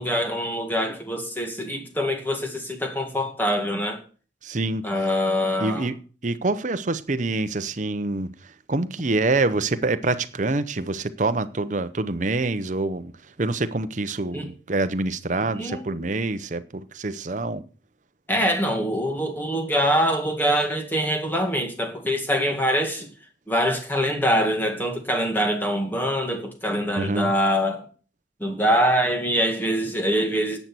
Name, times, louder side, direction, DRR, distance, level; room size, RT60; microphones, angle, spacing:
voice 1, 0.0-4.0 4.8-5.9 14.3-14.5 15.6-15.8 18.3-23.1 23.5-27.9 28.4-30.6, equal, 10° left, 2.0 m, -24 dB
voice 2, 4.4-4.9 5.6-6.0 6.2-13.1 13.4-17.6 27.0-27.3, right 2 dB, 40° right, 0.7 m, -26 dB
11.0 x 8.1 x 6.1 m
head